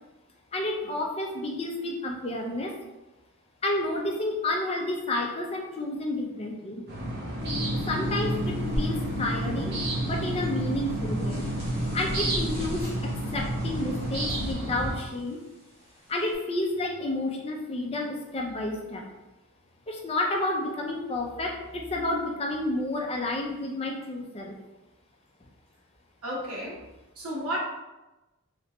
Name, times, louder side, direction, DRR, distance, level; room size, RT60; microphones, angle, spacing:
voice 1, 0.5-2.7 3.6-6.8 7.9-9.8 10.0-11.4 11.9-15.4 16.1-19.0 19.9-24.5, left 2 dB, 25° left, 0 dB, 0.4 m, -30 dB
sound 1, 6.9-15.0, right 1 dB, 50° right, 0.7 m, -33 dB
sound 2, 7.4-14.5, equal, 25° right, 1.1 m, -32 dB
voice 2, 26.2-26.8 27.2-27.6, equal, 85° right, -5 dB, 1.3 m, -32 dB
3.3 x 3.0 x 2.9 m, 1.0 s
head